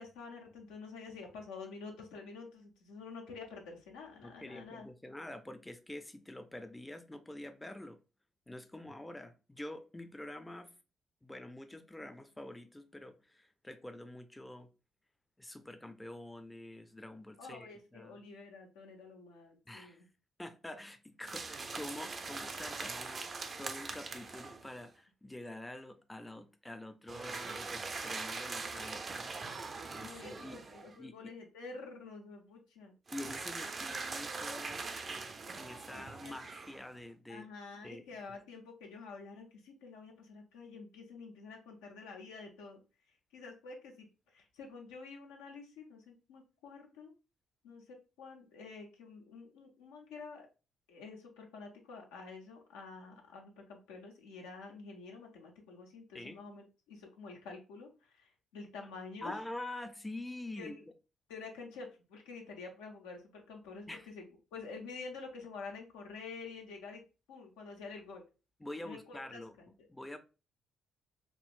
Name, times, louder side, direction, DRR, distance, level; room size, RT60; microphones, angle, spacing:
voice 1, 0.0-4.9 17.4-20.1 29.8-32.9 35.9-36.3 37.3-42.8 43.1-47.1 47.6-50.5 50.9-59.4 60.6-60.8 61.3-64.3 64.5-67.0 67.3-68.2 68.8-69.7, left 4 dB, 90° left, 0.6 m, -49 dB
voice 2, 4.2-8.0 8.5-10.7 11.2-14.7 15.4-18.2 19.7-20.0 20.4-29.3 29.9-30.6 31.0-31.2 33.1-34.8 35.5-37.5 37.8-38.0 56.1-56.4 59.2-60.8 63.9-64.1 68.6-69.6 69.9-70.2, left 1 dB, 15° left, 0.4 m, -46 dB
sound 1, 21.2-24.8 27.1-31.0 33.1-37.0, right 4 dB, 45° right, 0.4 m, -42 dB
3.7 x 2.0 x 2.4 m
hypercardioid pair, 55°, 0 cm